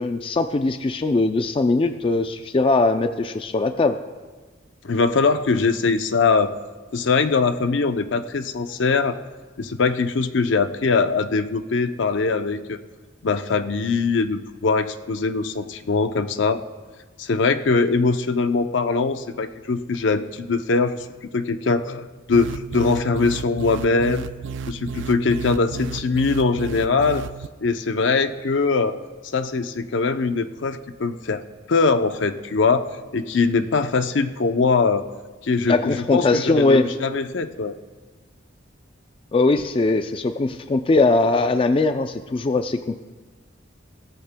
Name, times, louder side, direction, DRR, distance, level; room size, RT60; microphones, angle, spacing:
voice 1, 0.0-4.0 35.7-36.9 39.3-43.0, left 3 dB, 30° left, 8 dB, 0.3 m, -20 dB
voice 2, 4.8-6.5 6.9-9.2 9.6-12.8 13.2-16.6 17.2-21.1 21.3-24.3 24.7-27.2 27.6-29.0 29.3-35.0 35.4-37.7, left 4 dB, 70° left, 9 dB, 0.6 m, -22 dB
sound 1, 22.3-27.5, right 5 dB, 70° right, 0.4 m, -33 dB
17.5 x 13.5 x 2.2 m, 1.3 s
head